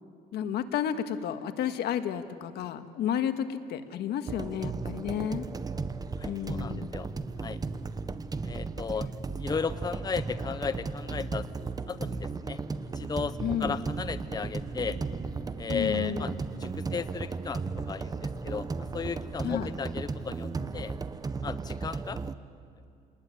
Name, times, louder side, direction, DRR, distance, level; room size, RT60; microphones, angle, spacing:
voice 1, 0.3-5.5 6.2-7.0 13.4-13.8 15.7-16.3 19.4-19.7, left 9 dB, 75° left, 8 dB, 1.6 m, -32 dB
sound 1, 4.3-22.4, right 4 dB, 20° right, 1.0 m, -35 dB
voice 2, 6.2-7.1 7.4-7.6 8.4-9.1 9.4-11.5 11.9-12.6 12.9-15.0 15.6-16.3 16.6-17.6 17.9-18.7 18.9-20.9 21.4-22.2, left 5 dB, 25° left, 13 dB, 0.8 m, -35 dB
29.5 x 20.0 x 9.7 m, 2.5 s
cardioid pair, 110°, 17 cm